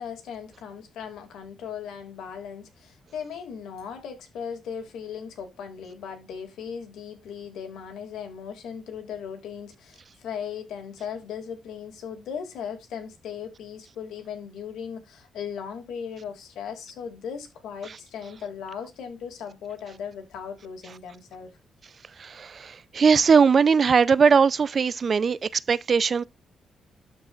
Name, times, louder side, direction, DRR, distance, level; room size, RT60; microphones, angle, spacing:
voice 1, 0.0-21.5, left 7 dB, 90° left, 2.2 m, -37 dB
voice 2, 22.2-26.2, right 5 dB, 45° right, 0.4 m, -20 dB
12.5 x 4.7 x 2.4 m
cardioid pair, 105°, 0 cm